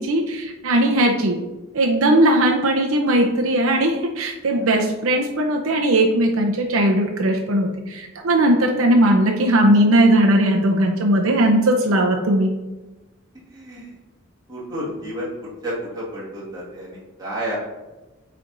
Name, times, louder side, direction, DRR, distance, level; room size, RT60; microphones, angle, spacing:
voice 1, 0.0-1.4 1.7-12.5, right 1 dB, 75° right, 1 dB, 0.6 m, -18 dB
voice 2, 4.5-4.9 13.5-13.9 14.5-15.3 15.6-17.6, equal, 20° right, -6 dB, 1.6 m, -31 dB
8.5 x 3.4 x 3.8 m, 1.1 s
head